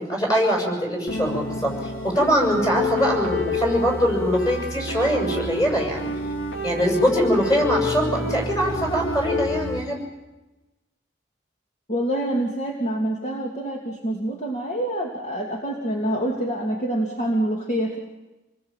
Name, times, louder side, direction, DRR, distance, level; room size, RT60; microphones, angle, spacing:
voice 1, 0.0-6.1 6.6-10.0, equal, 20° left, 1 dB, 7.3 m, -22 dB
sound 1, 1.1-9.8, left 2 dB, 80° left, 3.5 m, -28 dB
voice 2, 11.9-18.0, right 1 dB, 35° left, 1 dB, 2.8 m, -26 dB
27.5 x 20.0 x 9.1 m, 1.1 s
head